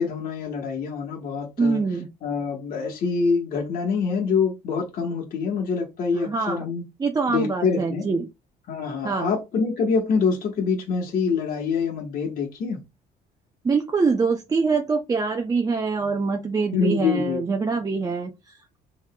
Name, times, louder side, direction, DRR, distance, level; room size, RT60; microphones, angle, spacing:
voice 1, 0.0-1.8 2.2-6.8 7.3-8.0 8.7-12.8 16.7-17.4, left 5 dB, 55° left, 1.1 m, -25 dB
voice 2, 1.6-2.1 6.1-6.7 7.0-8.3 9.0-9.3 13.6-18.8, right 4 dB, 20° right, 0.5 m, -24 dB
5.4 x 3.1 x 2.2 m
cardioid pair, 110°, 17 cm